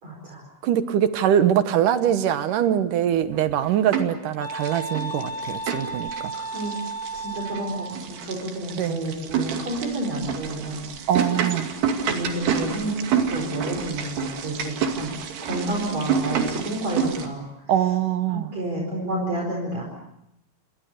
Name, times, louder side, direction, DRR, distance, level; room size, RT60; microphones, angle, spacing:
voice 1, 0.0-0.5 6.3-6.7 7.1-11.1 12.1-15.1 15.4-17.4 18.3-19.8, right 1 dB, 40° right, 0 dB, 5.7 m, -30 dB
voice 2, 0.6-6.1 8.8-9.0 11.1-11.7 17.7-18.5, right 10 dB, 65° right, 11 dB, 2.3 m, -22 dB
sound 1, 3.3-4.2 4.5-17.3, right 7 dB, 90° right, 4.5 m, -29 dB
sound 2, 4.4-8.0, right 2 dB, 5° left, 1.2 m, -33 dB
28.0 x 24.5 x 6.7 m, 0.85 s
omnidirectional pair, 4.6 m